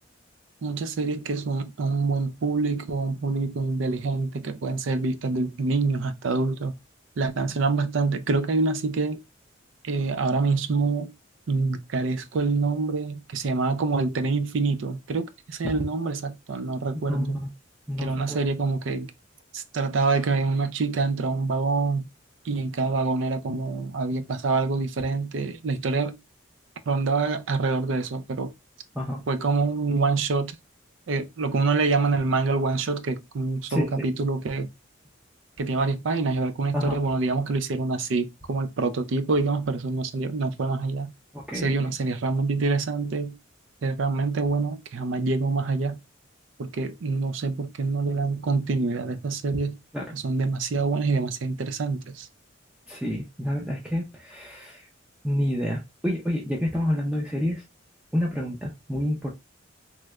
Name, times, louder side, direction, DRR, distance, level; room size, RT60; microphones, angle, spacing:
voice 1, 0.6-6.7 7.2-9.2 9.8-11.1 11.5-17.4 18.0-19.1 19.5-22.0 22.4-26.1 26.9-28.5 29.3-30.6 31.1-34.7 35.6-41.1 41.5-43.4 43.8-46.0 46.6-49.7 50.1-52.3, right 3 dB, 70° right, 0.4 m, -26 dB
voice 2, 16.9-17.5 17.9-18.4 28.9-29.2 33.7-34.1 36.7-37.0 41.3-41.9 49.9-50.1 52.9-54.9 55.2-57.6 58.1-59.3, equal, 5° right, 0.5 m, -28 dB
3.2 x 3.0 x 2.3 m
head